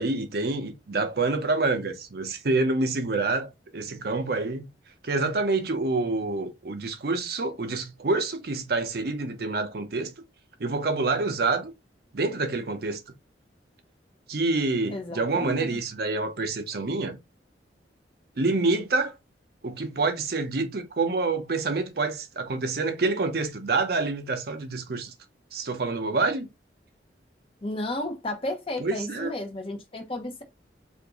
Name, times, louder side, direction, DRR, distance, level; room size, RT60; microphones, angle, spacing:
voice 1, 0.0-4.7 5.0-10.1 10.6-11.7 12.1-13.0 14.3-17.2 18.4-19.2 19.6-25.1 25.5-26.5 28.8-29.4, right 3 dB, 60° right, 0.6 m, -27 dB
voice 2, 14.9-15.8 27.6-30.4, left 1 dB, 30° left, 0.7 m, -33 dB
2.8 x 2.5 x 3.5 m
head